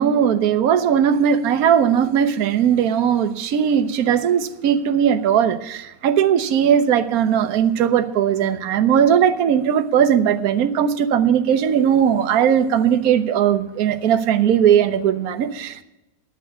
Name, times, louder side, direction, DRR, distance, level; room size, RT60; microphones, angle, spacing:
voice 1, 0.0-15.8, right 8 dB, 65° right, 9 dB, 1.2 m, -18 dB
10.0 x 7.1 x 9.3 m, 0.92 s
omnidirectional pair, 1.8 m